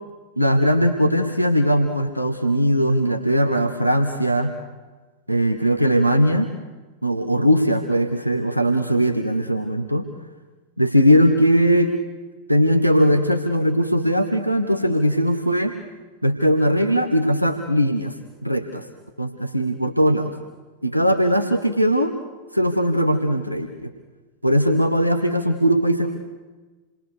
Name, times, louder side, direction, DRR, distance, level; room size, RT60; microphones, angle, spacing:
voice 1, 0.4-4.5 5.3-6.5 7.0-10.1 10.8-12.0 12.5-15.8 16.2-18.1 18.4-18.8 19.2-20.3 20.8-22.2 22.5-23.9 24.4-26.1, equal, 90° left, 6 dB, 1.3 m, -19 dB
28.5 x 21.5 x 6.8 m, 1.3 s
figure-of-eight pair, 90°, 0 cm